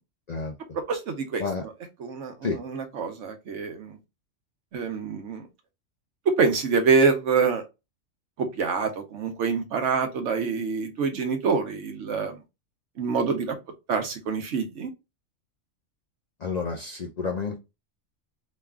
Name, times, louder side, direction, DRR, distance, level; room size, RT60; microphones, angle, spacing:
voice 1, 0.9-1.4 2.0-3.9 4.7-5.4 6.4-7.6 8.4-12.4 13.0-13.6 13.9-14.9, right 5 dB, 80° right, 1.1 m, -26 dB
voice 2, 16.4-17.6, left 4 dB, 55° left, 0.5 m, -30 dB
3.1 x 2.3 x 3.4 m
omnidirectional pair, 1.2 m